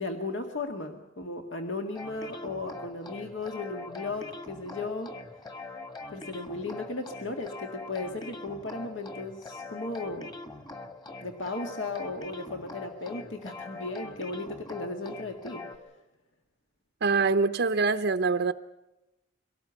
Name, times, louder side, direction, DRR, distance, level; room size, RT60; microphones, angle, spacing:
voice 1, 0.0-5.2 6.1-10.3 11.2-15.7, left 3 dB, 70° left, 4 dB, 1.9 m, -36 dB
sound 1, 2.0-15.8, left 3 dB, 20° left, 2.0 m, -43 dB
voice 2, 17.0-18.5, right 4 dB, 55° right, 7 dB, 0.7 m, -24 dB
23.5 x 18.5 x 7.0 m, 1.0 s
head